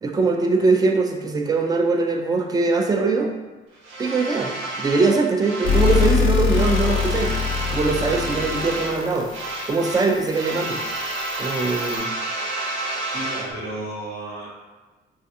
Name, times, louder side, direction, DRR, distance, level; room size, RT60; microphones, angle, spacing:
voice 1, 0.0-3.3 4.0-7.3 7.7-9.3 9.7-10.8 11.4-12.1, right 3 dB, 20° right, 3 dB, 0.3 m, -21 dB
sound 1, 3.8-6.2 6.4-9.0 9.3-13.5, right 2 dB, 75° right, 0.5 m, -30 dB
sound 2, 5.6-12.0, left 7 dB, 80° left, 0.5 m, -25 dB
voice 2, 13.1-14.5, right 2 dB, 55° right, -5 dB, 0.9 m, -32 dB
3.2 x 2.4 x 2.6 m, 1.2 s
cardioid pair, 90°, 20 cm